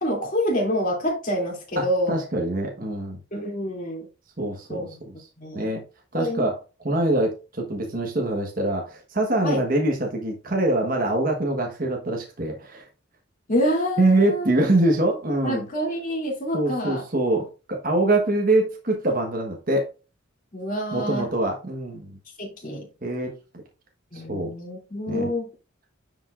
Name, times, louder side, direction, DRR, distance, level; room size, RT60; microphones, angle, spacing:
voice 1, 0.0-2.1 3.3-4.1 4.7-4.8 5.4-5.7 6.1-6.5 9.4-9.6 13.5-14.4 15.4-17.0 20.5-21.3 22.4-22.9 24.1-25.5, equal, 40° left, -1 dB, 2.8 m, -27 dB
voice 2, 1.8-3.2 4.4-4.9 5.5-5.8 6.1-6.6 6.8-12.9 14.0-15.6 16.5-19.9 20.9-22.2 23.0-23.4 24.1-24.5 25.1-25.3, right 2 dB, 40° right, 1 dB, 1.2 m, -24 dB
9.4 x 5.4 x 2.5 m, 0.31 s
head